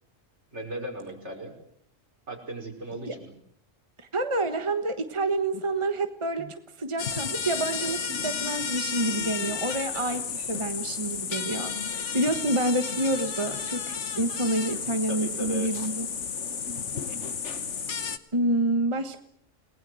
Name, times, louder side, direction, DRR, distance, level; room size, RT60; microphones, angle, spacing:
voice 1, 0.5-1.5 2.3-3.3 15.1-15.7 17.1-17.4, right 2 dB, 65° right, 1 dB, 5.8 m, -36 dB
voice 2, 4.1-10.2 10.5-16.1 18.3-19.2, right 2 dB, 25° right, 7 dB, 1.5 m, -28 dB
sound 1, 7.0-18.2, left 6 dB, 65° left, 1.6 m, -32 dB
29.0 x 19.5 x 7.8 m, 0.66 s
omnidirectional pair, 1.3 m